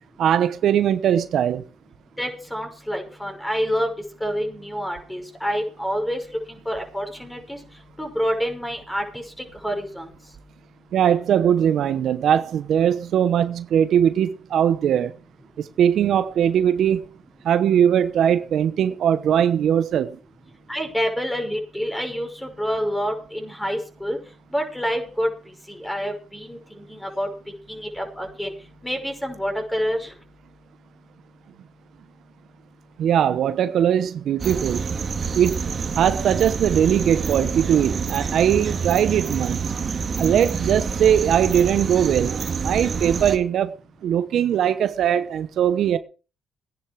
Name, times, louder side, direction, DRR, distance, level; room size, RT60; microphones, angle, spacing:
voice 1, 0.2-1.6 10.9-15.1 15.6-17.1 17.4-20.2 33.0-34.8 35.3-35.7 36.0-39.6 40.2-43.7 44.0-46.0, right 9 dB, 70° right, 1.0 m, -20 dB
voice 2, 2.2-3.9 4.2-6.2 6.5-7.6 8.0-9.2 9.6-10.1 20.7-24.2 24.5-25.3 25.7-27.3 27.7-28.5 28.8-30.1, equal, 5° left, 5.8 m, -27 dB
sound 1, 34.4-43.4, right 5 dB, 45° right, 2.2 m, -27 dB
17.5 x 10.0 x 4.8 m
cardioid pair, 90°, 0 cm